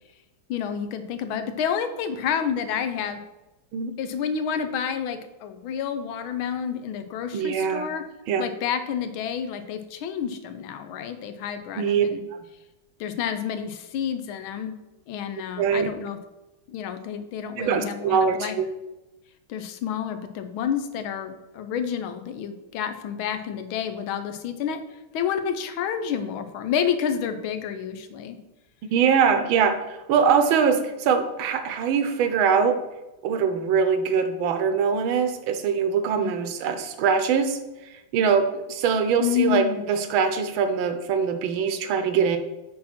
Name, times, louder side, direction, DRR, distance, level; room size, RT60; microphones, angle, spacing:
voice 1, 0.5-3.2 4.0-8.0 8.4-12.2 13.0-14.7 15.1-16.2 16.7-18.6 19.5-24.8 25.1-28.4 36.2-36.3 39.2-39.8, left 8 dB, 80° left, 8 dB, 1.5 m, -29 dB
voice 2, 7.3-7.9 8.3-8.5 11.8-12.1 15.6-15.9 17.6-18.7 28.8-32.8 33.2-37.6 38.1-42.4, right 6 dB, 80° right, 9 dB, 1.5 m, -22 dB
6.0 x 4.3 x 5.8 m, 1.0 s
omnidirectional pair, 2.2 m